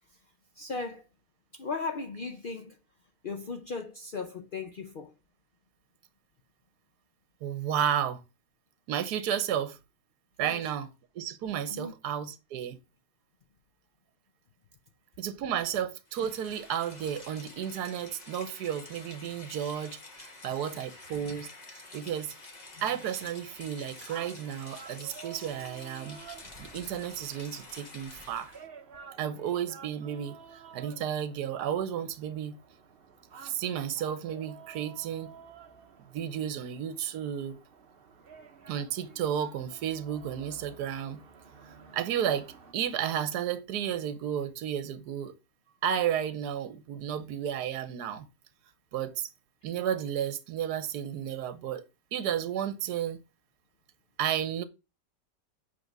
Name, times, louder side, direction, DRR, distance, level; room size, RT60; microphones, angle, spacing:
voice 1, 0.5-1.1 1.5-2.8 3.2-5.1 10.4-10.6 11.7-11.9 38.3-38.5, left 4 dB, 85° left, 0.4 m, -37 dB
voice 2, 7.4-8.2 8.9-9.8 10.4-10.9 11.1-12.8 15.2-22.3 22.8-26.2 26.6-28.6 29.2-30.4 30.7-32.6 33.4-35.3 36.1-37.6 38.7-41.2 41.7-45.3 45.8-48.3 48.9-49.3 49.6-51.8 52.1-53.2 54.2-54.6, right 9 dB, 70° right, 1.3 m, -32 dB
Rain, 16.1-28.7, left 2 dB, 25° left, 1.2 m, -48 dB
sound 1, 23.5-42.7, right 6 dB, 45° right, 0.9 m, -52 dB
8.0 x 3.7 x 5.9 m
omnidirectional pair, 1.9 m